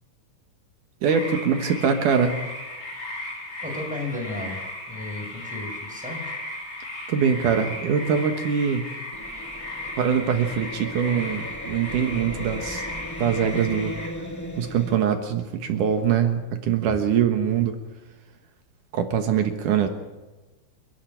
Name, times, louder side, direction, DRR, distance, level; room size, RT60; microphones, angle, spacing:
voice 1, 1.0-2.3 7.1-8.8 10.0-12.8 13.2-13.9 14.6-17.8 18.9-19.9, right 7 dB, 75° right, 6 dB, 2.9 m, -23 dB
sound 1, 1.1-14.1, left 1 dB, 50° left, 7.4 m, -36 dB
voice 2, 3.6-4.6 4.9-6.2, left 2 dB, ahead, 1 dB, 5.5 m, -33 dB
sound 2, 9.1-15.0, equal, 25° left, 0.3 m, -37 dB
29.5 x 11.5 x 9.1 m, 1.2 s
omnidirectional pair, 3.7 m